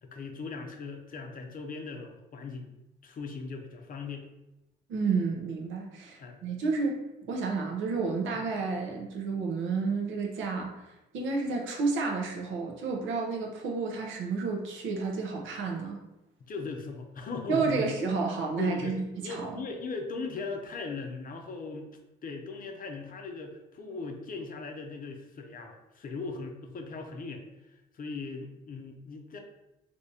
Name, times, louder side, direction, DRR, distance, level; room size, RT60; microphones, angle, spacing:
voice 1, 0.0-2.7 3.0-4.3 6.2-6.4 8.3-8.5 16.4-17.9 18.6-21.9 22.2-29.4, left 4 dB, 45° left, 4 dB, 0.6 m, -39 dB
voice 2, 4.9-7.0 7.3-16.0 17.5-19.6, right 4 dB, 75° right, 1 dB, 0.7 m, -31 dB
3.4 x 2.8 x 2.7 m, 0.94 s
cardioid pair, 90°, 20 cm